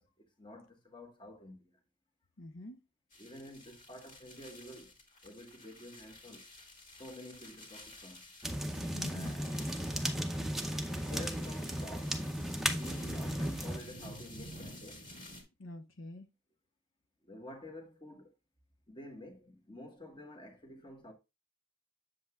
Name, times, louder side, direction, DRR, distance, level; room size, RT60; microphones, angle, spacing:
voice 1, 0.0-1.8 3.2-5.0 5.2-6.5 7.0-8.3 9.1-12.2 12.7-15.1 17.2-18.3 18.9-21.1, left 1 dB, 20° left, 1.4 m, -50 dB
voice 2, 2.4-2.8 8.9-9.3 12.7-13.1 15.6-16.3, left 1 dB, 70° left, 0.7 m, -46 dB
sound 1, 3.1-15.4, left 1 dB, 40° left, 2.2 m, -52 dB
sound 2, 8.4-13.8, equal, ahead, 0.6 m, -35 dB
7.8 x 7.7 x 2.3 m
head